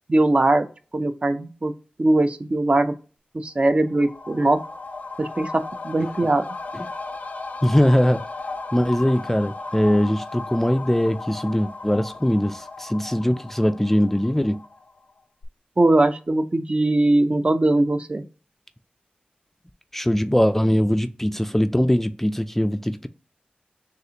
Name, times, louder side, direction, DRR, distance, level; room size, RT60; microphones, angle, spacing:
voice 1, 0.1-0.7 0.9-1.7 2.0-2.9 3.3-4.6 5.2-6.4 15.8-18.3, right 2 dB, 40° right, 0.5 m, -20 dB
sound 1, 3.7-15.1 15.4-15.5, left 3 dB, 60° left, 0.6 m, -36 dB
voice 2, 7.6-8.2 8.7-14.6 19.9-23.1, equal, 10° left, 0.4 m, -21 dB
6.4 x 2.5 x 2.8 m
wide cardioid pair, 65°, 3 cm